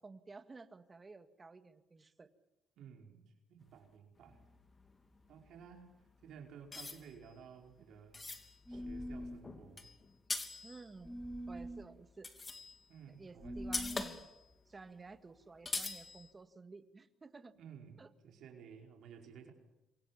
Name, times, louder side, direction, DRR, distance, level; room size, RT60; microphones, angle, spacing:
voice 1, 0.0-2.3 10.6-11.2 11.5-12.3 13.2-14.3 14.7-17.5 18.0-18.1, right 3 dB, 25° right, 9 dB, 2.1 m, -53 dB
voice 2, 2.8-4.4 5.3-5.9 6.2-9.9 12.9-13.6 17.5-19.5, right 7 dB, 70° right, 3 dB, 4.9 m, -55 dB
sound 1, 4.2-6.3 6.7-11.2 11.8-13.0 13.2-13.3 13.6-14.5 14.8-14.9 15.1-15.2 15.7-16.3, left 3 dB, 25° left, 3.1 m, -44 dB
sound 2, 8.7-9.4 11.0-11.9 13.4-14.2, equal, ahead, 1.8 m, -43 dB
28.0 x 23.5 x 7.3 m, 0.96 s
cardioid pair, 95°, 0 cm